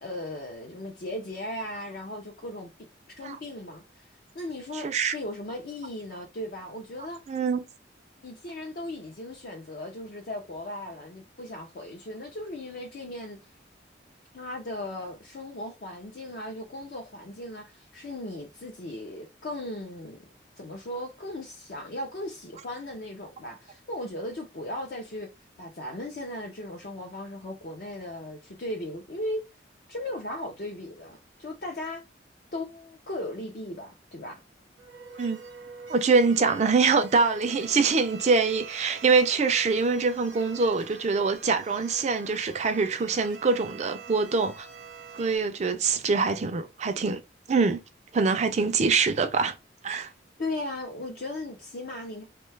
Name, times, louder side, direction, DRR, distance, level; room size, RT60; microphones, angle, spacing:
voice 1, 0.0-2.7 3.2-4.1 4.3-7.2 8.2-13.5 14.3-20.2 20.6-25.3 25.6-29.4 29.9-32.0 32.5-34.4 36.3-36.5 50.4-52.2, left 1 dB, 50° left, 0.5 m, -37 dB
voice 2, 4.7-5.1 7.3-7.6 35.2-35.4 35.9-44.7 45.1-47.2 47.5-47.8 48.1-49.6 49.8-50.1, right 4 dB, 35° right, 0.4 m, -24 dB
sound 1, 34.8-45.4, right 6 dB, 65° right, 0.7 m, -45 dB
2.7 x 2.2 x 3.1 m
head